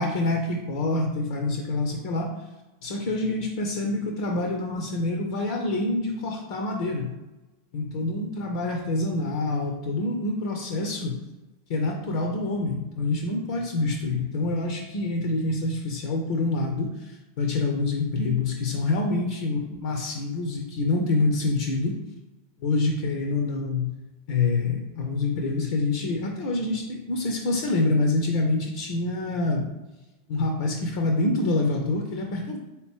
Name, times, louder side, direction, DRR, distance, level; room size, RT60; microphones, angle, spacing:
voice 1, 0.0-2.3 2.8-7.1 7.7-11.2 11.7-22.0 22.6-23.9 24.3-29.7 30.3-32.6, left 2 dB, 60° left, 2 dB, 0.6 m, -26 dB
4.1 x 2.9 x 3.5 m, 1.0 s
figure-of-eight pair, 90°, 0 cm